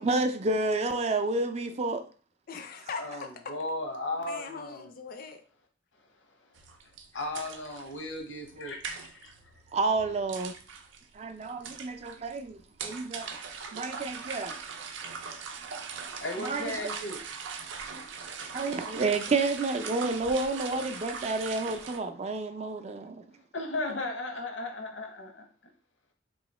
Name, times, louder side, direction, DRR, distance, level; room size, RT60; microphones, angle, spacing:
voice 1, 0.0-2.0 9.7-10.5 11.1-13.3 13.7-14.6 16.4-16.6 18.5-23.2, right 3 dB, 35° right, 0.4 m, -30 dB
voice 2, 2.5-3.3 4.3-5.4, left 5 dB, 50° left, 0.4 m, -41 dB
voice 3, 3.0-4.9 6.8-9.3 16.2-17.2 23.5-25.5, left 2 dB, 90° left, 0.9 m, -36 dB
sound 1, 6.6-22.0, right 6 dB, 85° right, 0.5 m, -41 dB
3.1 x 2.7 x 4.1 m
head